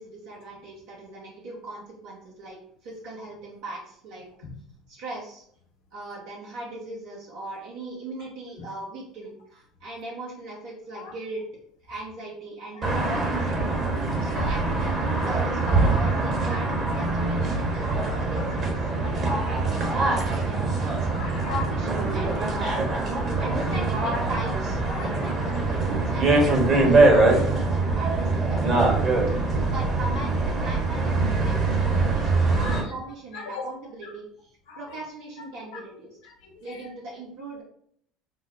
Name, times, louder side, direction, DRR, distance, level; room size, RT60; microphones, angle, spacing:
voice 1, 0.0-2.6 2.8-4.3 4.9-5.4 5.9-11.4 11.8-13.6 14.2-21.1 21.5-29.0 29.5-36.2 36.6-37.6, right 1 dB, 70° right, -4 dB, 0.9 m, -39 dB
sound 1, 12.8-32.8, right 3 dB, 45° right, 1.2 m, -23 dB
voice 2, 13.7-14.1 18.0-18.6 21.1-21.7 24.5-25.2 27.4-27.5 32.5-32.9 33.3-33.6 34.0-34.1 34.7-35.0 35.7-35.8 36.2-36.9, left 5 dB, 70° left, 1 dB, 0.9 m, -40 dB
5.8 x 2.0 x 2.6 m, 0.66 s
hypercardioid pair, 70°, 0 cm